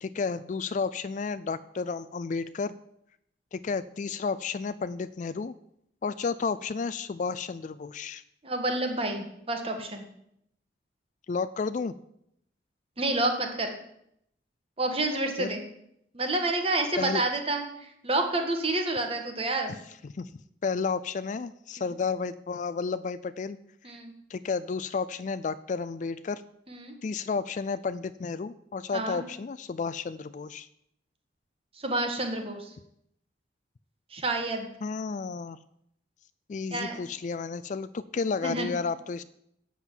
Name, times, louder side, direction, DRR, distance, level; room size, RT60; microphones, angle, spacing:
voice 1, 0.0-2.7 3.5-5.5 6.0-8.2 11.3-11.9 15.4-15.5 17.0-17.2 20.0-20.3 20.6-23.6 24.3-26.4 27.0-30.7 34.8-35.6 36.5-39.2, left 5 dB, 45° left, 15 dB, 0.3 m, -32 dB
voice 2, 8.4-10.0 13.0-13.7 14.8-15.6 16.1-19.7 23.8-24.1 26.7-26.9 28.9-29.2 31.8-32.7 34.1-34.7 36.7-37.0 38.4-38.7, right 2 dB, 30° right, 4 dB, 1.5 m, -29 dB
8.2 x 7.2 x 7.2 m, 0.74 s
head